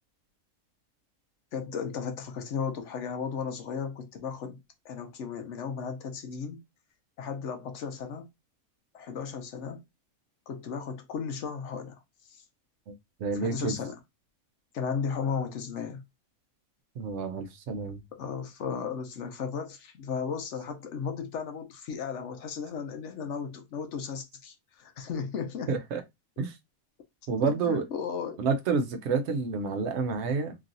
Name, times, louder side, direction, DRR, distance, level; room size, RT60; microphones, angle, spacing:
voice 1, 1.5-4.6 4.8-6.6 7.2-8.3 8.9-9.8 10.5-12.0 12.3-12.4 13.3-14.0 14.7-16.0 18.1-25.7 27.4-28.4, left 6 dB, 65° left, 0.8 m, -35 dB
voice 2, 13.2-13.8 17.0-18.0 25.7-26.0 26.4-26.5 27.3-27.8 28.4-30.5, right 4 dB, 60° right, 0.8 m, -29 dB
3.0 x 2.6 x 2.4 m
omnidirectional pair, 1.5 m